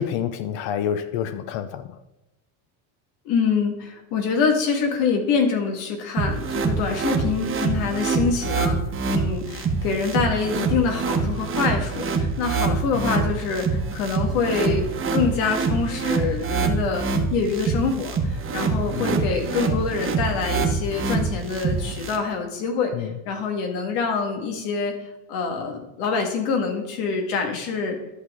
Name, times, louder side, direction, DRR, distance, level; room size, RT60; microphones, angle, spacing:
voice 1, 0.0-1.9 12.9-13.1 18.9-19.2 22.9-23.1, left 9 dB, 60° left, 0.7 m, -28 dB
voice 2, 3.3-8.8 9.1-18.2 18.5-24.9 25.3-28.0, left 5 dB, 85° left, 2.0 m, -25 dB
sound 1, 6.2-22.2, right 4 dB, 25° right, 1.0 m, -25 dB
11.5 x 6.2 x 3.7 m
cardioid pair, 140°, 50 cm